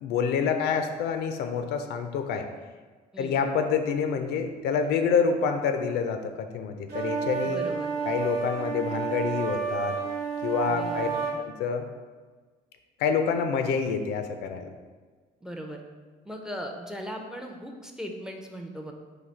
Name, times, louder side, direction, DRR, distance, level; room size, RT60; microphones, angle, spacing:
voice 1, 0.0-2.5 3.2-7.6 8.1-10.0 10.4-11.1 11.4-11.9 13.0-14.7, left 6 dB, 75° left, 7 dB, 0.4 m, -27 dB
voice 2, 3.1-3.5 7.4-7.9 10.7-11.4 15.4-15.8 16.2-18.9, equal, 5° right, 3 dB, 0.4 m, -38 dB
sound 1, 6.9-11.4, right 6 dB, 85° right, 0.9 m, -30 dB
4.0 x 2.7 x 4.3 m, 1.4 s
cardioid pair, 110°, 17 cm